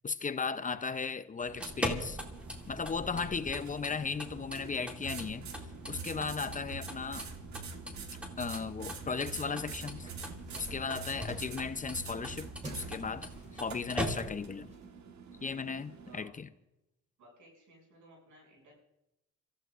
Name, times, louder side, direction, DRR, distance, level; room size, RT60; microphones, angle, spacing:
voice 1, 0.0-2.2 2.7-7.3 8.4-10.1 10.5-14.7 15.4-16.5, left 5 dB, 25° left, 0.6 m, -36 dB
sound 1, 1.4-14.6, equal, 5° right, 2.4 m, -42 dB
sound 2, 1.5-16.2, right 5 dB, 70° right, 1.5 m, -46 dB
sound 3, 9.7-14.9, right 1 dB, 25° right, 3.2 m, -51 dB
voice 2, 10.8-11.7 16.0-16.3 17.2-18.7, right 1 dB, 90° right, 6.9 m, -58 dB
29.5 x 15.0 x 2.5 m
cardioid pair, 100°, 29 cm